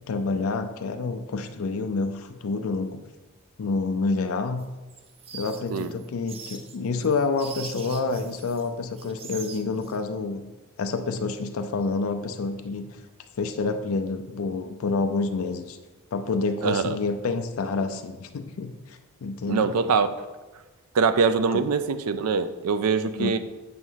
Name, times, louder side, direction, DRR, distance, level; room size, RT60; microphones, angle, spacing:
voice 1, 0.1-3.0 3.6-4.7 5.3-10.4 10.8-13.0 13.4-15.8 16.1-19.7 21.5-21.6 23.2-23.3, left 3 dB, 70° left, 7 dB, 0.4 m, -28 dB
sound 1, 4.6-8.7 9.0-10.0, right 6 dB, 25° right, 0.4 m, -42 dB
voice 2, 16.6-17.0 19.5-20.1 20.9-23.4, right 5 dB, 85° right, 11 dB, 0.4 m, -23 dB
7.7 x 3.0 x 5.5 m, 1.2 s
head